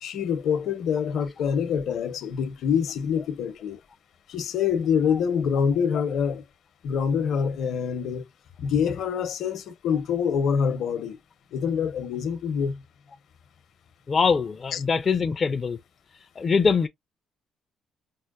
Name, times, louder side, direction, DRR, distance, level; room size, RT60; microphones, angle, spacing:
voice 1, 0.0-3.8 4.3-6.4 6.8-8.3 8.6-11.2 11.5-12.8 14.7-14.8, left 7 dB, 65° left, 0.8 m, -26 dB
voice 2, 14.1-15.8 16.4-16.9, left 5 dB, 30° left, 0.4 m, -23 dB
5.5 x 2.1 x 2.4 m
cardioid pair, 135°, 0 cm